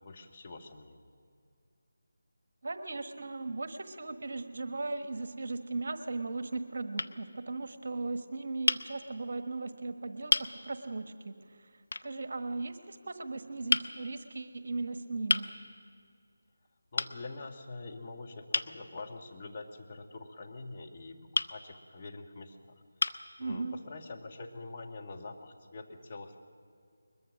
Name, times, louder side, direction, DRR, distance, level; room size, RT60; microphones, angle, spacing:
voice 1, 0.0-1.1 16.9-22.8 23.4-26.4, left 3 dB, 35° left, 2 dB, 1.8 m, -45 dB
voice 2, 2.6-11.7 12.0-15.5 23.4-23.7, right 3 dB, 55° right, 9 dB, 1.3 m, -37 dB
sound 1, 5.2-5.8 6.5-6.7 7.0-7.2 8.7-8.9 9.7-9.8 10.3-10.5 11.9-12.1 13.7-13.9 15.3-15.5 17.0-17.2 18.5-18.7 21.3-21.5 22.4-22.5 23.0-23.3, left 3 dB, 65° left, 0.8 m, -30 dB
21.5 x 21.5 x 6.3 m, 2.3 s
figure-of-eight pair, 160°, 0 cm